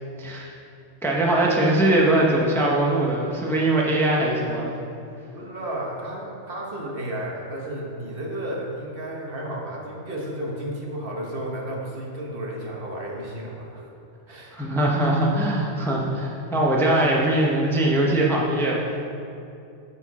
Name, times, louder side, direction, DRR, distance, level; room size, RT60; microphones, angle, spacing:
voice 1, 0.2-0.5 1.0-4.7 14.6-19.0, right 1 dB, ahead, -3 dB, 0.7 m, -21 dB
voice 2, 5.3-13.9 14.3-14.6, right 1 dB, 55° right, -2 dB, 1.3 m, -32 dB
8.8 x 4.5 x 6.0 m, 2.7 s
omnidirectional pair, 1.2 m